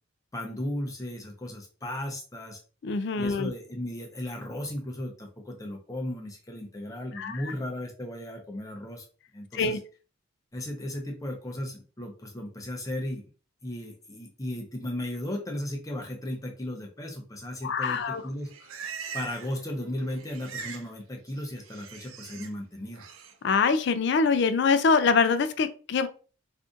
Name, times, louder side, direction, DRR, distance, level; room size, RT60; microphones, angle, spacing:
voice 1, 0.3-2.6 3.2-9.0 9.3-9.8 10.5-13.3 13.6-18.5 19.1-23.0, left 1 dB, 15° left, 1 dB, 0.6 m, -35 dB
voice 2, 2.8-3.5 7.1-7.4 9.5-9.8 17.6-18.2 23.4-26.1, left 5 dB, 55° left, 11 dB, 0.3 m, -24 dB
Livestock farm animals working animals, 18.2-19.6 19.8-20.9 21.2-22.5 22.9-23.3, right 6 dB, 75° right, 0.5 m, -41 dB
2.6 x 2.4 x 3.6 m, 0.38 s
head